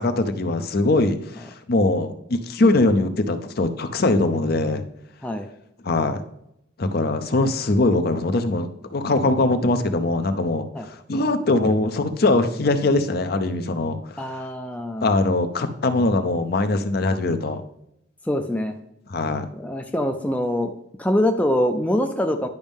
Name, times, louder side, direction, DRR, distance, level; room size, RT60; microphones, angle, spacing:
voice 1, 0.0-4.8 5.8-6.2 6.8-14.4 15.0-17.6 19.1-19.5, left 2 dB, 50° left, 9 dB, 0.6 m, -22 dB
voice 2, 14.2-15.1 18.3-18.7 19.5-20.7 21.0-22.5, left 1 dB, 5° left, 4 dB, 0.4 m, -24 dB
10.5 x 5.2 x 3.6 m, 0.78 s
head